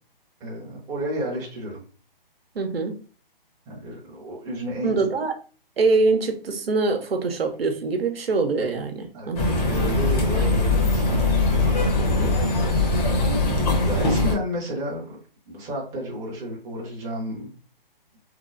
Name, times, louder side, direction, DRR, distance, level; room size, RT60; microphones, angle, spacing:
voice 1, 0.4-1.8 3.7-5.0 9.1-12.4 13.6-15.2 15.5-17.5, equal, 10° right, -4 dB, 0.6 m, -32 dB
voice 2, 2.5-3.0 4.8-5.3 5.8-9.6, right 3 dB, 85° right, 5 dB, 0.7 m, -24 dB
sound 1, 9.3-14.3, left 2 dB, 45° left, 0.9 m, -21 dB
3.1 x 2.1 x 2.4 m, 0.38 s
hypercardioid pair, 140°, 29 cm